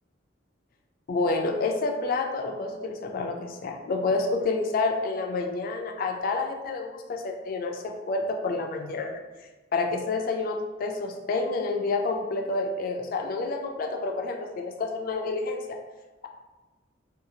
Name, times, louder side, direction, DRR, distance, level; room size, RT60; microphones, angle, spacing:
voice 1, 1.1-9.2 9.7-15.6, left 3 dB, 45° left, 3 dB, 0.3 m, -29 dB
2.7 x 2.3 x 2.7 m, 1.2 s
head